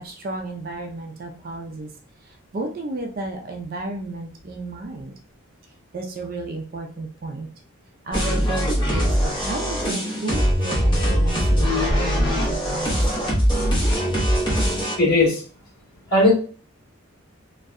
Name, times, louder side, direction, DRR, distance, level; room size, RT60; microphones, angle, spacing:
voice 1, 0.0-1.9 2.5-5.1 5.9-7.5 8.0-13.0, right 2 dB, 40° right, 2 dB, 0.3 m, -32 dB
sound 1, 8.1-15.0, equal, 20° left, 0.6 m, -21 dB
voice 2, 15.0-15.4 16.1-16.3, left 2 dB, 45° left, -6 dB, 1.4 m, -17 dB
2.6 x 2.1 x 2.4 m, 0.39 s
head